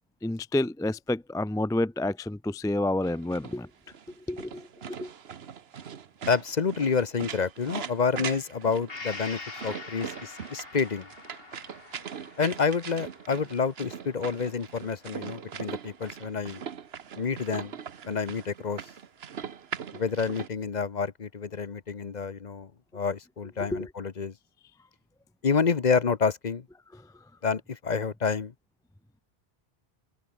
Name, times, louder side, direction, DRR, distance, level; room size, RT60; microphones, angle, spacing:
voice 1, 0.2-3.7 4.3-5.1 23.7-23.9, left 1 dB, 5° left, 0.4 m, -29 dB
sound 1, 3.0-20.5, right 7 dB, 80° right, 1.3 m, -41 dB
voice 2, 6.3-11.1 12.4-16.6 17.2-17.7 18.1-18.8 19.9-24.3 25.4-26.6 27.4-28.5, left 5 dB, 45° left, 1.0 m, -28 dB
Gong, 8.9-16.5 16.9-17.0, left 3 dB, 70° left, 2.8 m, -45 dB
open air
omnidirectional pair, 1.0 m